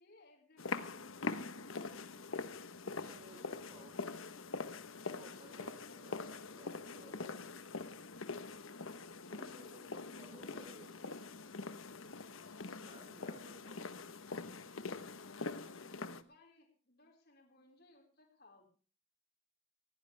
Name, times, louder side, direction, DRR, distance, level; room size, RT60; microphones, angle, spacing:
voice 1, 0.0-1.4 12.6-13.1 15.7-18.6, left 2 dB, 50° left, 0 dB, 5.0 m, -64 dB
sound 1, 0.6-16.2, left 4 dB, 85° left, 1.2 m, -44 dB
voice 2, 2.8-4.1 5.0-7.4 8.3-8.5 8.8-11.2 12.4-14.1, right 1 dB, 20° right, 1 dB, 3.9 m, -59 dB
19.5 x 17.0 x 3.5 m, 0.37 s
head